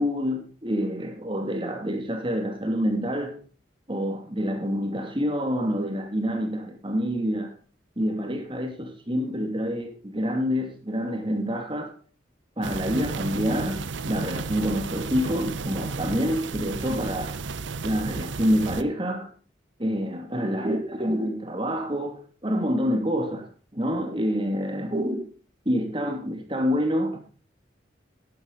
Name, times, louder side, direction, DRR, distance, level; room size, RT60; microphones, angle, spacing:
voice 1, 0.0-3.4 3.9-7.5 8.0-11.9 12.6-17.3 17.8-19.3 19.8-25.2 25.6-27.2, equal, 30° right, 2.6 m, -27 dB
sound 1, 12.6-18.8, right 4 dB, 90° right, 0.7 m, -33 dB
11.5 x 10.5 x 4.0 m
head